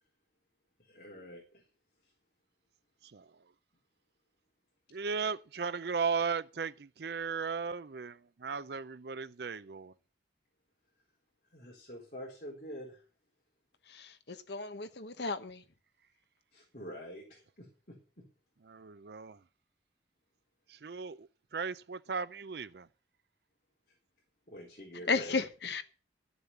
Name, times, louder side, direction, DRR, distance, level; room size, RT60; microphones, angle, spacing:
voice 1, 0.8-1.7 2.0-2.1 11.5-13.0 16.5-18.3 23.9-24.0 24.5-25.8, equal, 45° left, 3.9 m, -47 dB
voice 2, 3.0-3.4 4.9-9.9 18.7-19.4 20.7-22.9, right 5 dB, 60° right, 0.5 m, -36 dB
voice 3, 13.9-15.6 25.1-25.8, left 4 dB, 65° left, 1.2 m, -34 dB
13.0 x 6.9 x 7.1 m
head